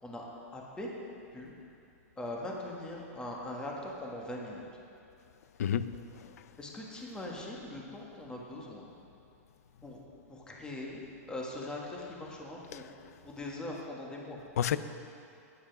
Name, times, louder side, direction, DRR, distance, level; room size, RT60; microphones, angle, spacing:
voice 1, 0.5-0.9 1.3-1.5 2.2-4.6 6.6-8.9 9.8-10.0 10.3-12.9 13.2-14.4, left 1 dB, 10° left, -2 dB, 1.5 m, -41 dB
voice 2, 5.6-6.4 12.7-12.9 14.6-14.8, left 9 dB, 80° left, 14 dB, 0.5 m, -31 dB
9.3 x 8.5 x 5.9 m, 2.6 s
hypercardioid pair, 140°, 8 cm